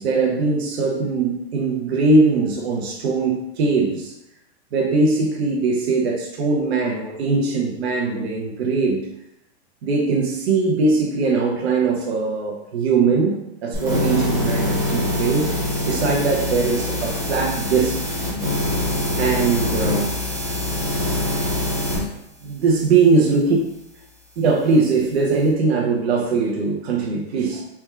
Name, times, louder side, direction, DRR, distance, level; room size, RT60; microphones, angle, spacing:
voice 1, 0.0-4.1 4.7-9.1 9.8-15.5 15.8-18.0 19.2-20.1 22.4-23.6 24.4-27.6, right 4 dB, 70° right, 0 dB, 0.8 m, -20 dB
sound 1, 13.7-22.0, left 1 dB, 10° right, 1.3 m, -24 dB
4.2 x 3.5 x 2.3 m, 0.86 s
supercardioid pair, 155°, 33 cm